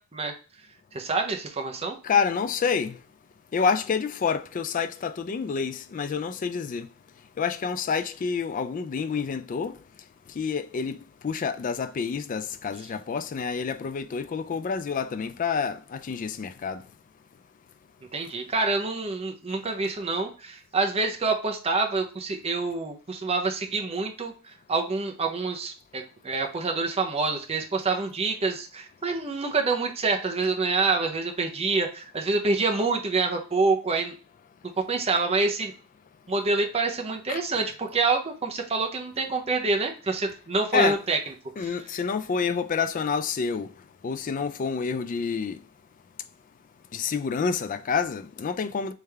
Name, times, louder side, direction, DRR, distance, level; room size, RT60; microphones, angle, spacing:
voice 1, 0.9-2.0 18.1-24.3 24.7-34.1 34.8-35.7 36.3-41.2 41.6-41.7, right 3 dB, 30° right, 0.7 m, -27 dB
voice 2, 2.0-3.0 3.5-6.9 7.4-9.7 10.4-11.0 11.2-16.8 37.3-37.4 40.7-41.0 41.6-43.7 44.0-45.6 46.9-48.9, left 5 dB, 40° left, 0.3 m, -28 dB
3.5 x 3.4 x 3.3 m
head